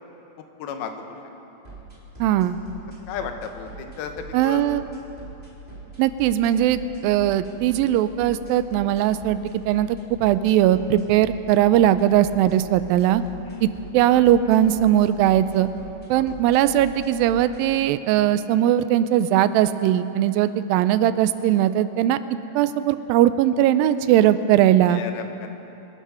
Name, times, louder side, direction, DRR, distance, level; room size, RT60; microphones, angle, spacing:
voice 1, 0.4-1.2 3.1-4.6 13.5-13.7 16.1-16.2 20.4-20.5 24.9-25.5, left 7 dB, 85° left, 6 dB, 2.9 m, -34 dB
sound 1, 1.6-17.6, right 3 dB, 15° right, 2.2 m, -41 dB
voice 2, 2.2-2.6 4.3-4.8 6.0-9.4 9.7-13.2 13.6-13.7 13.9-15.7 16.1-22.2 22.6-25.0, right 12 dB, 85° right, 13 dB, 2.2 m, -19 dB
25.5 x 10.5 x 5.6 m, 3.0 s
omnidirectional pair, 4.3 m